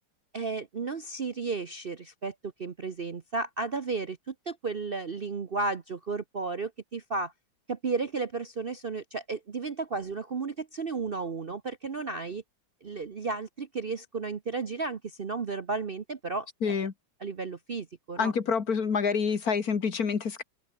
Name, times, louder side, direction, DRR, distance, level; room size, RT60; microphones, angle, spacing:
voice 1, 0.3-7.3 7.7-12.4 12.8-16.8 17.2-18.3, right 4 dB, 40° right, 0.9 m, -33 dB
voice 2, 16.6-16.9 18.2-20.4, left 5 dB, 55° left, 2.2 m, -27 dB
open air
omnidirectional pair, 2.0 m